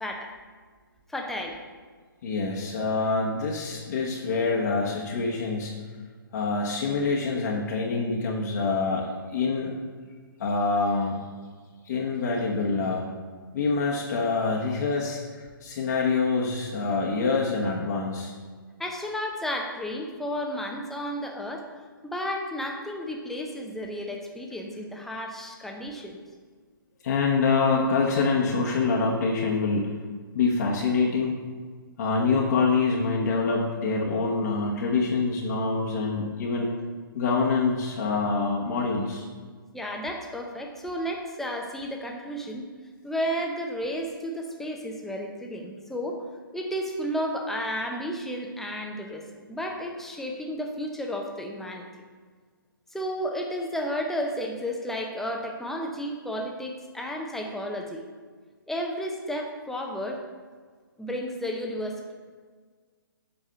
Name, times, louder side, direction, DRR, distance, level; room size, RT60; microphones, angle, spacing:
voice 1, 1.1-1.6 18.8-21.7 22.0-26.2 39.7-42.6 43.0-46.2 46.5-51.9 52.9-58.0 58.7-60.2 61.0-62.0, equal, 5° left, 1 dB, 0.8 m, -32 dB
voice 2, 2.2-5.7 6.3-9.7 10.4-11.2 11.8-13.1 13.5-18.3 27.0-29.9 30.3-31.4 32.0-36.8 37.1-39.2, left 4 dB, 50° left, -2 dB, 1.1 m, -25 dB
7.9 x 4.7 x 5.6 m, 1.5 s
figure-of-eight pair, 130°, 12 cm